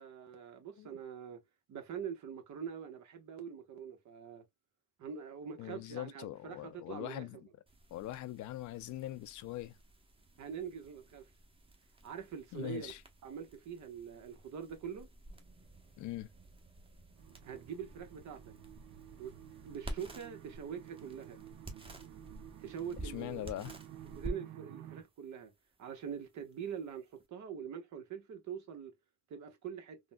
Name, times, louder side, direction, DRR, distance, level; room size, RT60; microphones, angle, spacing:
voice 1, 0.0-1.4 1.7-4.4 5.0-7.4 10.4-11.3 12.0-12.9 13.2-15.1 17.4-18.5 19.2-19.3 19.6-21.4 22.6-23.4 24.1-25.5 25.8-28.9 29.3-30.0, right 7 dB, 70° right, 0.9 m, -44 dB
voice 2, 5.6-7.4 7.9-9.8 12.5-13.0 16.0-16.3 23.0-23.8, left 14 dB, 75° left, 0.5 m, -42 dB
sound 1, 7.7-27.3, right 1 dB, 20° right, 0.8 m, -51 dB
sound 2, 17.2-25.0, right 11 dB, 90° right, 0.6 m, -52 dB
3.7 x 2.1 x 2.2 m
cardioid pair, 90°, 30 cm